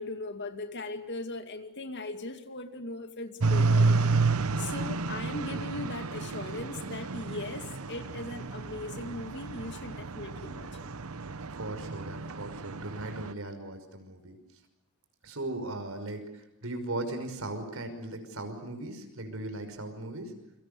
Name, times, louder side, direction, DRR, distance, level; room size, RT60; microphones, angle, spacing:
voice 1, 0.0-4.1 4.6-10.9, left 2 dB, 55° left, 2.3 m, -39 dB
sound 1, 3.4-13.3, right 3 dB, 90° right, 1.0 m, -30 dB
voice 2, 11.6-14.4 15.2-20.3, right 2 dB, 70° right, 5.7 m, -38 dB
29.5 x 25.0 x 6.9 m
head